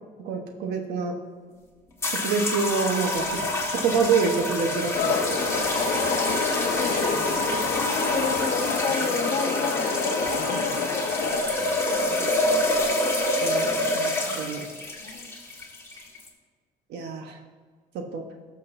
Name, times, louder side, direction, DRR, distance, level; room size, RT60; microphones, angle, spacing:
voice 1, 0.2-1.2 2.2-3.4 3.7-5.2 13.4-14.6 16.9-17.4 17.9-18.2, right 5 dB, 80° right, 3 dB, 1.2 m, -27 dB
sound 1, 2.0-16.3, left 1 dB, 15° left, 1.7 m, -27 dB
sound 2, 4.9-11.4, left 6 dB, 65° left, 0.8 m, -29 dB
voice 2, 5.4-7.2 7.5-10.1 11.4-12.7 14.3-14.4 14.9-15.3, left 4 dB, 40° left, 2 dB, 1.7 m, -34 dB
16.0 x 6.4 x 2.7 m, 1.5 s
cardioid pair, 110°, 17 cm